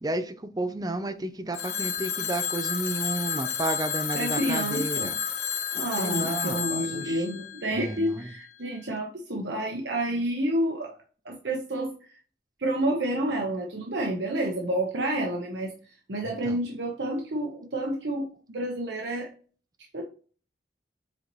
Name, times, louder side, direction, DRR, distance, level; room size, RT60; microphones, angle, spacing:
voice 1, 0.0-5.2 5.8-7.3 7.7-8.3 16.2-16.6, right 2 dB, 20° right, 0.5 m, -32 dB
Telephone, 1.5-8.4, left 8 dB, 55° left, 0.9 m, -31 dB
voice 2, 4.1-5.1 5.7-10.9 11.2-12.2 12.6-15.7 16.1-19.3 19.9-20.0, right 1 dB, 75° right, 1.0 m, -29 dB
7.7 x 4.0 x 3.1 m
head